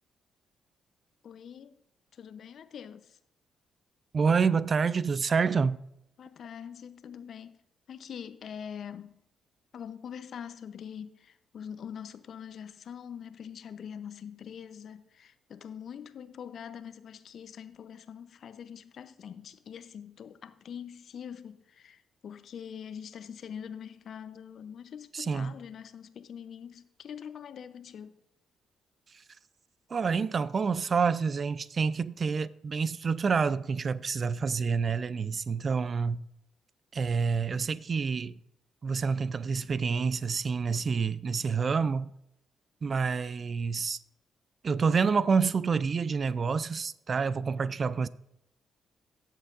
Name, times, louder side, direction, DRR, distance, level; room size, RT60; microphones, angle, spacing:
voice 1, 1.2-1.8 2.1-3.2 6.2-7.6 7.9-9.2 9.7-28.2, left 8 dB, 60° left, 0.7 m, -44 dB
voice 2, 4.1-5.8 25.1-25.5 29.9-36.2 36.9-38.4 38.8-42.1 42.8-44.0 44.6-48.1, right 5 dB, 50° right, 0.5 m, -28 dB
17.5 x 7.4 x 2.5 m
hypercardioid pair, 45°, 0 cm